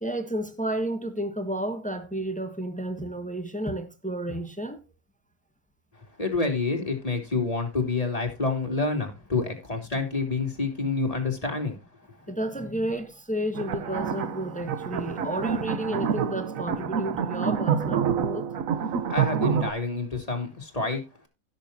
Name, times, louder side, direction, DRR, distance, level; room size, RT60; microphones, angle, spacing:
voice 1, 0.0-4.8 12.3-18.5, right 1 dB, 5° left, 1.4 m, -31 dB
voice 2, 5.9-11.8 19.1-21.3, left 3 dB, 25° left, 3.1 m, -28 dB
sound 1, 13.5-19.7, right 7 dB, 65° right, 1.3 m, -27 dB
16.5 x 7.1 x 2.7 m
omnidirectional pair, 1.6 m